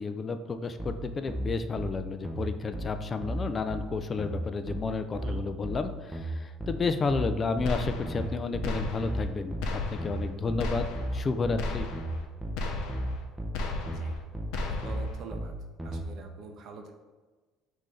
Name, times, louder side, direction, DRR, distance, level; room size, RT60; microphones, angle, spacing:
voice 1, 0.0-10.9 11.1-11.9, left 4 dB, 25° left, 9 dB, 0.3 m, -31 dB
sound 1, 0.8-16.0, right 1 dB, 5° right, 0.7 m, -35 dB
sound 2, 7.7-8.3 8.6-9.3 9.6-10.3 10.6-11.3 11.6-12.3 12.6-13.3 13.5-14.2 14.5-15.2, left 3 dB, 75° left, 0.5 m, -34 dB
voice 2, 13.8-14.2 14.7-15.5 15.8-16.9, right 4 dB, 50° right, 3 dB, 0.5 m, -45 dB
5.4 x 2.6 x 3.3 m, 1.3 s
cardioid pair, 130°, 0 cm